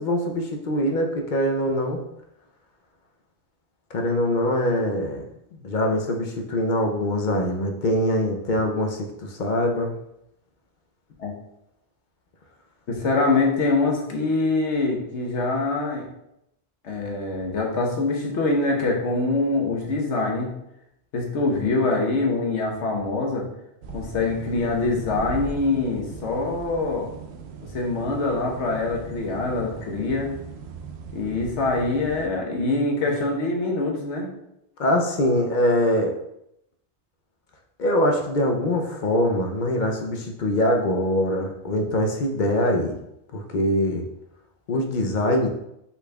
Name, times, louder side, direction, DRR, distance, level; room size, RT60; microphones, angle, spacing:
voice 1, 0.0-2.0 3.9-5.2 5.6-9.9 34.8-36.1 37.8-43.0 43.3-44.0 44.7-45.5, left 1 dB, 55° left, 3 dB, 0.6 m, -23 dB
voice 2, 12.9-16.1 16.8-20.5 21.1-23.5 23.9-27.1 27.7-30.3 31.1-34.3, left 3 dB, 85° left, 0 dB, 1.2 m, -24 dB
sound 1, 23.8-32.3, right 5 dB, 70° right, 0.8 m, -39 dB
5.6 x 4.1 x 2.2 m, 0.81 s
omnidirectional pair, 1.2 m